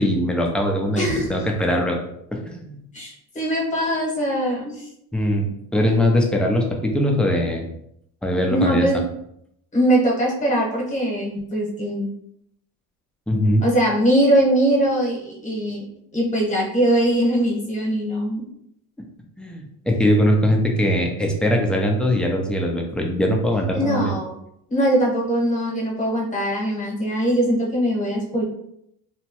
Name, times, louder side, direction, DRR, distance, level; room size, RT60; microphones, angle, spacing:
voice 1, 0.0-2.0 2.3-2.8 5.1-7.7 8.2-8.9 13.3-13.6 19.4-24.2, equal, 5° left, 0 dB, 0.4 m, -21 dB
voice 2, 0.9-1.4 2.9-4.9 8.5-9.0 9.7-12.1 13.6-15.8 16.1-18.4 23.7-24.4 24.7-28.4, right 1 dB, 20° left, -3 dB, 1.0 m, -21 dB
3.0 x 2.2 x 2.9 m, 0.75 s
cardioid pair, 115°, 36 cm